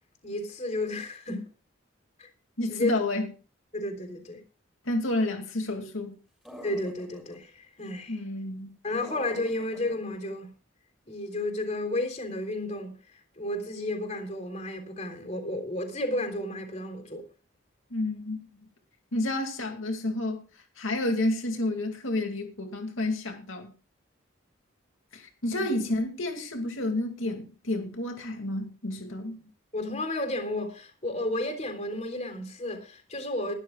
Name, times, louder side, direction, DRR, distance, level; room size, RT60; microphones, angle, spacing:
voice 1, 0.2-1.5 2.2-2.3 2.7-2.9 3.7-4.4 6.6-8.2 8.8-10.5 11.1-12.9 13.4-17.3 25.5-25.7 29.7-33.5, left 1 dB, 35° left, 3.5 m, -32 dB
voice 2, 2.6-3.3 4.8-6.1 8.1-8.7 17.9-18.6 19.1-20.4 20.8-23.7 25.1-29.4, left 1 dB, 90° left, 2.4 m, -30 dB
sound 1, 6.5-7.4 9.0-10.0, equal, ahead, 6.3 m, -44 dB
21.5 x 13.0 x 2.4 m
head